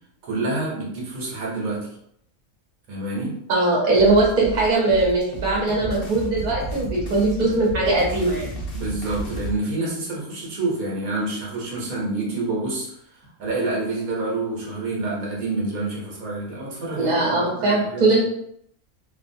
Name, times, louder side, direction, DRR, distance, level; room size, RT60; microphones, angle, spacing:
voice 1, 0.2-1.9 2.9-3.4 8.7-18.2, right 2 dB, 70° right, -4 dB, 1.2 m, -28 dB
voice 2, 3.5-8.5 17.0-18.2, right 2 dB, 40° right, -4 dB, 0.8 m, -20 dB
sound 1, 3.9-9.6, right 1 dB, 70° left, 0.5 m, -33 dB
2.6 x 2.3 x 2.5 m, 0.71 s
omnidirectional pair, 1.6 m